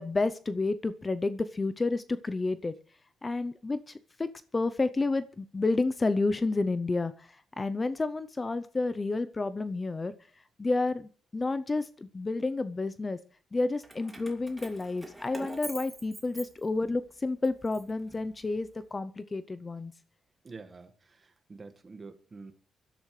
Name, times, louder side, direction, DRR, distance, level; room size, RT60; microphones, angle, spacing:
voice 1, 0.0-2.7 3.2-10.1 10.6-13.2 13.5-19.9, left 3 dB, 20° left, 13 dB, 0.6 m, -30 dB
Keys jangling, 13.8-17.0 17.4-18.7, right 1 dB, 5° right, 2.5 m, -45 dB
voice 2, 20.4-22.5, right 4 dB, 30° right, 9 dB, 1.6 m, -47 dB
24.0 x 12.0 x 3.2 m, 0.41 s
cardioid pair, 135°, 0 cm